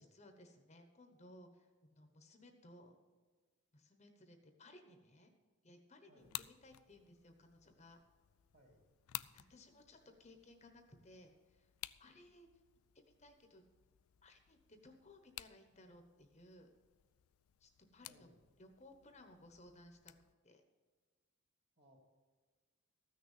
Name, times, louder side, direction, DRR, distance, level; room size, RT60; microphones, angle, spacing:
voice 1, 0.0-2.9 3.7-5.3 5.6-8.0 9.3-11.7 12.0-12.5 13.2-13.6 14.2-16.7 17.6-18.3 18.6-20.1 20.4-20.6, left 1 dB, 30° left, 5 dB, 1.0 m, -61 dB
sound 1, 6.2-20.3, left 15 dB, 80° left, 0.4 m, -55 dB
voice 2, 8.5-8.8 18.0-18.4 21.8-22.1, equal, 45° right, 1 dB, 2.9 m, -66 dB
14.0 x 6.5 x 7.3 m, 1.5 s
head